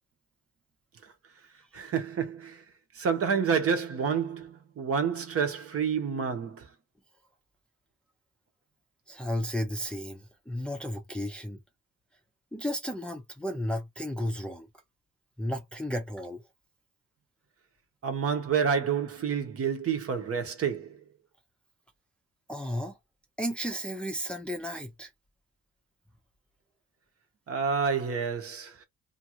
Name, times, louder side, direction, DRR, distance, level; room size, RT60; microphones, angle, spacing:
voice 1, 1.7-2.6 2.9-6.7 18.0-21.0 27.5-28.8, right 6 dB, 50° right, 1.0 m, -29 dB
voice 2, 9.1-11.6 12.5-14.7 15.4-16.4 22.5-23.0 23.4-25.1, equal, 5° left, 0.6 m, -33 dB
2.6 x 2.5 x 3.0 m
cardioid pair, 90°, 30 cm